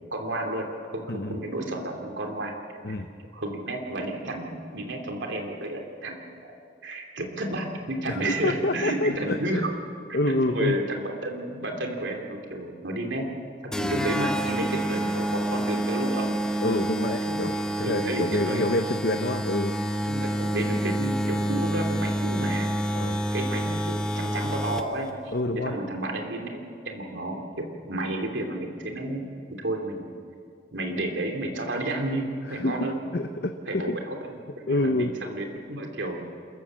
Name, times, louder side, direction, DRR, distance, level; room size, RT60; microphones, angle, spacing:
voice 1, 0.1-2.5 2.9-3.0 3.3-6.2 6.4-6.5 6.8-9.7 10.3-13.2 13.6-16.3 17.2-17.4 17.8-18.8 20.0-22.7 23.3-25.3 25.6-26.6 26.8-29.2 29.6-30.1 30.7-33.0 33.7-34.4 34.6-36.3, right 1 dB, 85° right, 2 dB, 3.1 m, -31 dB
voice 2, 1.1-1.4 2.8-3.1 8.1-9.6 10.1-10.8 16.6-19.7 22.9-23.2 25.3-25.7 32.5-34.0 34.7-35.1, left 1 dB, 55° left, 6 dB, 0.8 m, -27 dB
sound 1, 13.7-25.1, right 1 dB, 5° left, 1.0 m, -28 dB
27.5 x 14.5 x 7.5 m, 2.3 s
head